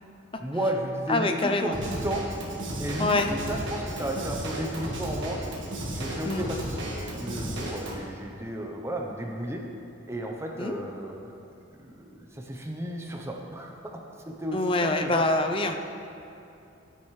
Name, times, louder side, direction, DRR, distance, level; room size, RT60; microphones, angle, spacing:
voice 1, 0.4-2.2 2.8-5.4 5.9-6.9 7.2-9.6 10.1-11.3 11.8-13.8 14.3-15.3, right 1 dB, 15° right, 1 dB, 0.7 m, -33 dB
voice 2, 1.1-1.7 3.0-3.3 6.3-6.5 10.6-10.8 14.5-15.8, left 2 dB, 25° left, 5 dB, 0.5 m, -25 dB
Drum kit / Drum, 1.7-7.9, right 1 dB, 65° right, 1.7 m, -34 dB
15.0 x 9.0 x 3.2 m, 2.7 s
head